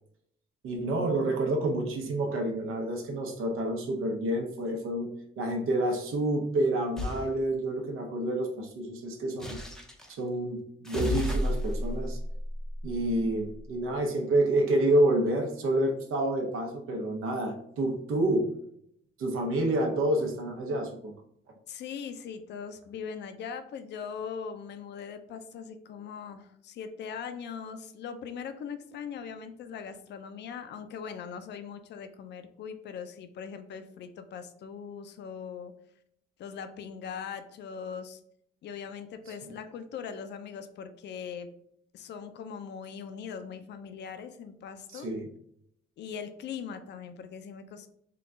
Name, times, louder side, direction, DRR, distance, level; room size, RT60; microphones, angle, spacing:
voice 1, 0.6-5.1 5.4-9.6 10.1-12.2 12.8-18.5 19.2-21.1 39.4-39.5 44.9-45.3, right 1 dB, 85° right, 3 dB, 0.8 m, -28 dB
sound 1, 7.0-7.2 9.4-10.1 10.8-13.5, left 1 dB, 5° left, 0.5 m, -32 dB
voice 2, 21.7-35.7 36.4-38.2 38.6-41.5 41.9-45.1 46.0-47.9, left 6 dB, 55° left, 9 dB, 0.4 m, -40 dB
3.7 x 2.3 x 3.7 m, 0.71 s
cardioid pair, 155°, 21 cm